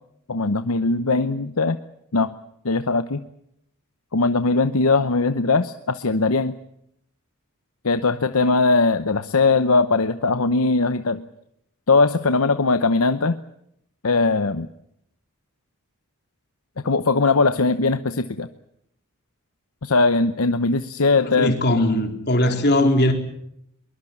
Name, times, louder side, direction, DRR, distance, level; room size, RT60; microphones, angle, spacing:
voice 1, 0.3-1.8 2.1-2.4 2.6-3.2 4.1-6.6 7.8-11.2 11.9-13.4 14.0-14.7 16.8-18.5 19.8-21.6, left 3 dB, 75° left, 10 dB, 0.9 m, -20 dB
voice 2, 21.2-23.1, left 1 dB, 50° left, 4 dB, 4.0 m, -20 dB
22.5 x 22.0 x 8.6 m, 0.76 s
head